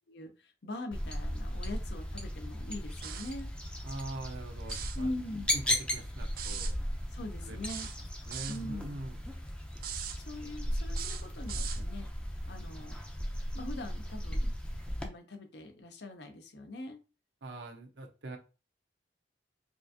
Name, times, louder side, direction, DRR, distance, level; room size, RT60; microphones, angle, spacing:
voice 1, 0.1-3.5 4.9-5.6 7.1-7.9 8.5-9.0 10.2-12.1 12.4-13.0 13.5-14.5 15.0-17.0, left 1 dB, 70° left, 6 dB, 0.7 m, -42 dB
sound 1, 0.9-15.1, equal, 5° left, 0.5 m, -36 dB
sound 2, 3.0-3.4 4.6-5.0 6.4-6.7 7.7-8.6 9.8-10.2 10.9-11.8, right 9 dB, 55° right, 0.4 m, -40 dB
voice 2, 3.8-5.1 5.5-6.8 7.4-7.6 8.3-9.2 17.4-18.4, right 1 dB, 90° right, 3 dB, 0.9 m, -43 dB
4.6 x 2.5 x 2.7 m, 0.31 s
head